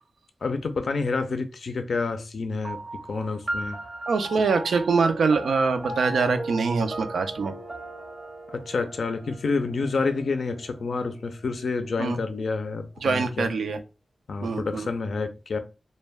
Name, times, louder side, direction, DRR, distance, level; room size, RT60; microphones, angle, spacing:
voice 1, 0.4-2.8 3.1-3.8 8.5-13.5 14.3-15.6, left 4 dB, 75° left, 0.4 m, -28 dB
sound 1, 2.6-11.5, right 1 dB, 45° right, 0.5 m, -38 dB
voice 2, 4.1-7.5 12.0-12.2 13.0-13.8 14.4-14.9, right 4 dB, 90° right, 0.3 m, -24 dB
2.2 x 2.1 x 3.2 m
cardioid pair, 45°, 0 cm